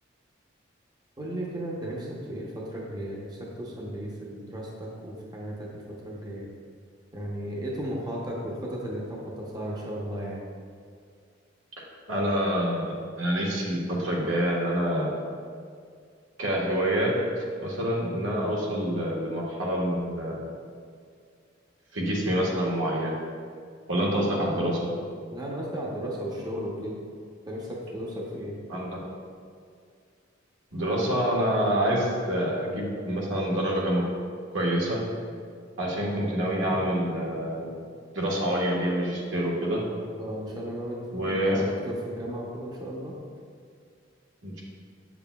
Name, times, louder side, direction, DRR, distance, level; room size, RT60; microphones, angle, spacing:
voice 1, 1.2-6.5 7.1-10.4 25.3-27.0 27.5-28.6 40.2-41.0 41.3-43.1, equal, 20° right, -3 dB, 0.8 m, -35 dB
voice 2, 12.1-15.1 16.4-20.4 21.9-23.2 23.9-24.9 28.7-29.0 30.7-34.1 34.5-35.0 35.8-37.7 38.1-39.8 41.1-41.6 44.4-44.6, equal, 85° right, -4 dB, 1.5 m, -27 dB
7.9 x 7.0 x 2.3 m, 2.2 s
head